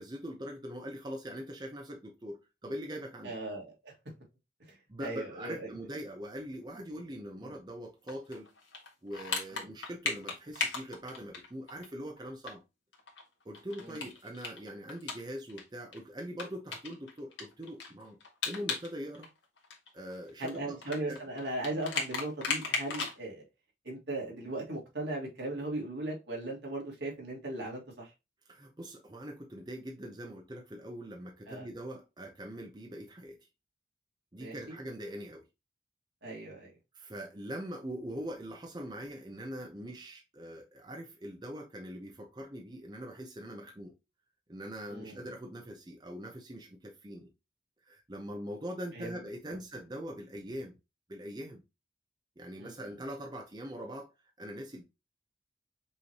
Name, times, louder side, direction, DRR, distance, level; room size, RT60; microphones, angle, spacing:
voice 1, 0.0-3.4 4.9-8.5 9.0-12.6 13.4-18.2 18.4-19.3 19.9-21.2 28.5-33.4 34.3-35.4 36.9-43.9 44.5-47.3 47.9-50.8 51.1-51.6 52.4-54.1 54.4-54.8, equal, 20° right, 0.6 m, -42 dB
voice 2, 3.2-3.9 4.7-5.7 7.4-7.5 9.5-9.6 13.8-14.0 20.4-23.5 23.9-28.1 31.5-31.6 34.4-34.8 36.2-36.7 44.9-45.2 48.9-49.2 52.6-52.7, right 2 dB, 70° right, 1.9 m, -38 dB
sound 1, 8.1-11.9 12.2-12.3 12.5-12.6 12.9-15.6 15.9-16.0 16.4-18.9 19.1-23.2, left 4 dB, 85° left, 1.5 m, -36 dB
5.4 x 3.1 x 2.8 m
head